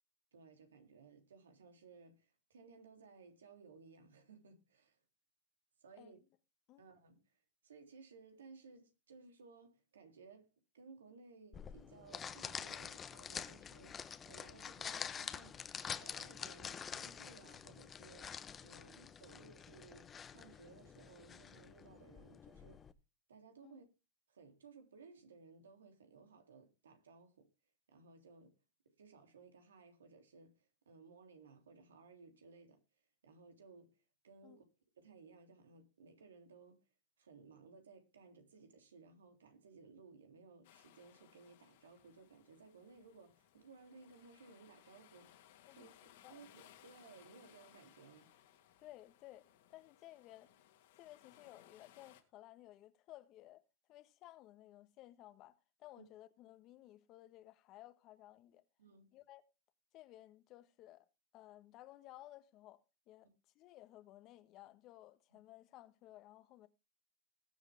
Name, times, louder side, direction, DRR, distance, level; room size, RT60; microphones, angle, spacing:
voice 1, 0.3-5.0 5.8-6.2 6.8-14.0 14.2-15.6 16.0-18.4 18.6-22.8 23.3-23.8 24.3-27.5 27.9-28.6 29.0-32.8 33.2-34.6 35.0-36.8 37.2-45.4 45.8-45.9 46.3-48.3 56.0-56.1 58.8-59.1 65.3-65.4, right 4 dB, 80° right, 3.2 m, -60 dB
sound 1, 11.5-22.9, left 7 dB, 25° left, 1.1 m, -47 dB
sound 2, 40.6-52.2, left 11 dB, 65° left, 2.8 m, -65 dB
voice 2, 48.8-50.5 50.9-53.6 53.9-58.6 59.1-59.4 59.9-61.1 61.3-63.3 63.5-66.7, left 15 dB, 45° left, 1.5 m, -57 dB
21.0 x 7.4 x 3.6 m
hypercardioid pair, 100°, 0 cm